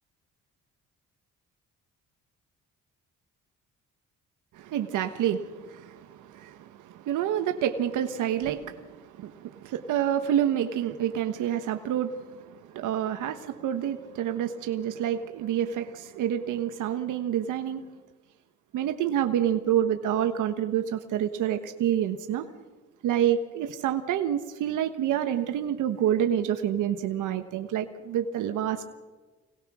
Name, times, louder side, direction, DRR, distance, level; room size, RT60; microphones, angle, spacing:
voice 1, 4.5-17.8 18.7-22.5 23.0-28.9, right 10 dB, 85° right, 7 dB, 1.4 m, -28 dB
26.0 x 19.5 x 6.3 m, 1.3 s
cardioid pair, 90°, 30 cm